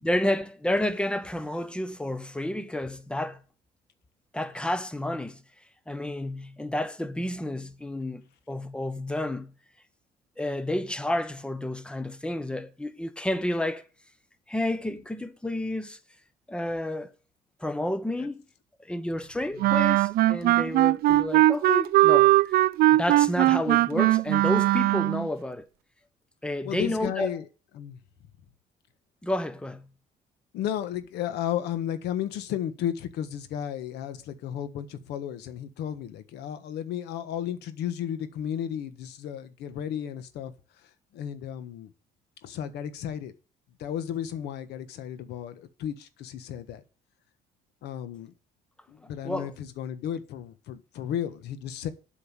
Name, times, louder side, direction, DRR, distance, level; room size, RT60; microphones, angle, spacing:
voice 1, 0.0-3.4 4.3-5.4 5.9-9.5 10.4-13.8 14.5-16.0 16.5-17.1 17.6-18.4 18.8-22.6 22.9-25.7 26.4-27.4 29.2-29.9 49.2-49.5, left 1 dB, 5° left, 1.0 m, -30 dB
Wind instrument woodwind instrument, 19.6-25.3, right 16 dB, 65° right, 0.4 m, -20 dB
voice 2, 26.6-27.5 27.7-28.0 30.5-40.5 41.1-41.9 42.4-43.3 43.8-46.8 47.8-48.3 48.9-51.9, left 10 dB, 80° left, 1.4 m, -33 dB
8.3 x 5.4 x 7.4 m
cardioid pair, 110°, 17 cm